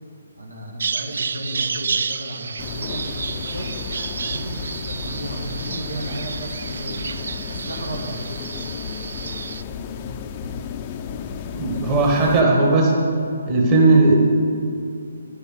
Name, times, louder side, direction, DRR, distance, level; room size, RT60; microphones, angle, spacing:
voice 1, 0.4-3.0 3.3-3.9 4.3-7.1 7.5-8.3 11.9-12.3, right 1 dB, 85° right, 0 dB, 2.1 m, -34 dB
Bird vocalization bird call bird song, 0.8-9.6, right 5 dB, 60° right, 0.4 m, -30 dB
sound 1, 2.6-12.4, left 6 dB, 30° left, 0.5 m, -33 dB
voice 2, 11.5-13.1 13.5-14.2, right 2 dB, 25° right, -2 dB, 1.7 m, -16 dB
11.0 x 6.9 x 7.9 m, 2.4 s
figure-of-eight pair, 140°, 0 cm